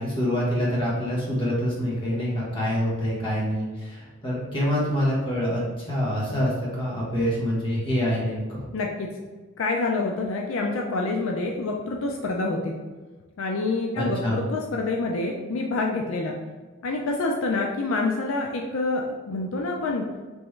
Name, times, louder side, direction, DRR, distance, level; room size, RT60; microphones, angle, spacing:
voice 1, 0.0-8.5 14.0-14.4, equal, 25° left, -6 dB, 1.1 m, -26 dB
voice 2, 8.7-9.1 9.6-12.8 13.4-16.3 16.8-20.1, left 3 dB, 70° left, 1 dB, 0.4 m, -27 dB
3.5 x 3.0 x 3.2 m, 1.3 s
head